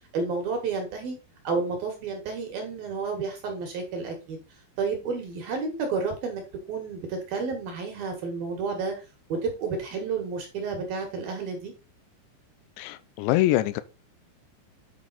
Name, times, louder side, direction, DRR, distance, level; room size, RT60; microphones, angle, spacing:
voice 1, 0.1-1.2 1.4-4.4 4.8-6.4 6.7-8.9 9.3-11.7, right 4 dB, 60° right, 2.8 m, -31 dB
voice 2, 12.8-13.8, left 15 dB, 80° left, 2.7 m, -24 dB
9.1 x 5.3 x 4.0 m
omnidirectional pair, 5.7 m